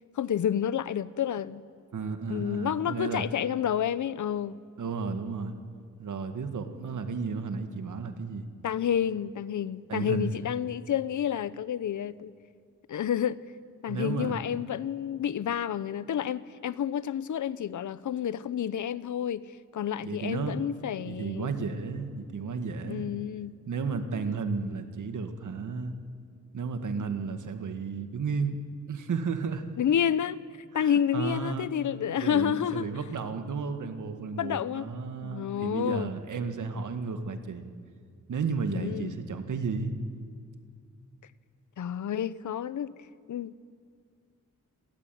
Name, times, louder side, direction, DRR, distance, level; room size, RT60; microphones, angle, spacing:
voice 1, 0.2-1.6 2.3-4.6 8.6-12.3 12.9-13.4 13.8-19.5 19.7-21.5 22.8-23.5 29.8-30.4 30.7-32.9 34.4-34.9 35.2-36.1 38.7-39.2 41.8-42.9 43.3-43.5, left 9 dB, 80° left, 0.8 m, -29 dB
voice 2, 1.9-3.3 4.8-5.6 6.0-8.5 9.9-10.3 13.9-14.4 20.0-20.6 21.1-23.1 23.7-25.9 26.5-28.6 28.9-29.7 30.8-31.7 32.2-37.7 38.3-39.9, right 5 dB, 80° right, 1.9 m, -33 dB
27.5 x 18.0 x 9.4 m
wide cardioid pair, 120°, 30 cm